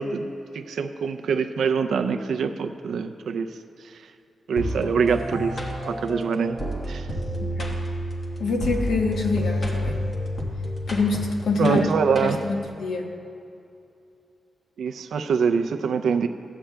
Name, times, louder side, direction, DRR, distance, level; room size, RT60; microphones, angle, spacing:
voice 1, 0.0-3.5 3.8-4.0 4.5-6.6 6.9-7.1 11.6-12.4 14.8-16.3, right 6 dB, 80° right, 7 dB, 0.4 m, -24 dB
sound 1, 4.6-12.7, equal, 35° left, 1.3 m, -30 dB
voice 2, 7.4-7.8 8.4-10.0 10.9-11.8 12.2-13.1, left 3 dB, 75° left, 2 dB, 1.0 m, -26 dB
14.5 x 8.5 x 2.2 m, 2.6 s
wide cardioid pair, 145°, 0 cm